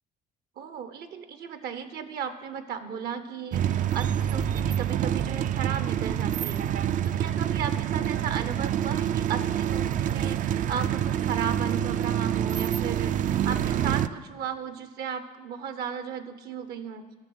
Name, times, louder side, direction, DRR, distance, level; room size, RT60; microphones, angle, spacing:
voice 1, 0.6-6.6 7.0-17.0, right 7 dB, 70° right, 10 dB, 0.9 m, -35 dB
sound 1, 3.5-14.1, right 10 dB, 50° right, 0.4 m, -27 dB
12.5 x 6.1 x 7.8 m, 1.3 s
cardioid pair, 110°, 17 cm